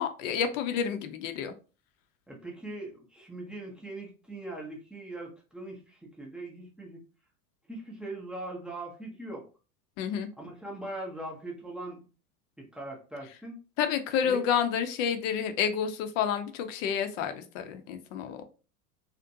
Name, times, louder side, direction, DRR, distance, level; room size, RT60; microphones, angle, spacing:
voice 1, 0.0-1.5 10.0-10.3 13.8-18.4, left 8 dB, 60° left, 0.6 m, -29 dB
voice 2, 2.3-7.0 7.7-9.5 10.4-12.0 12.6-13.6 14.3-14.4, right 2 dB, ahead, 0.5 m, -41 dB
2.5 x 2.1 x 2.6 m
hypercardioid pair, 100°, 45 cm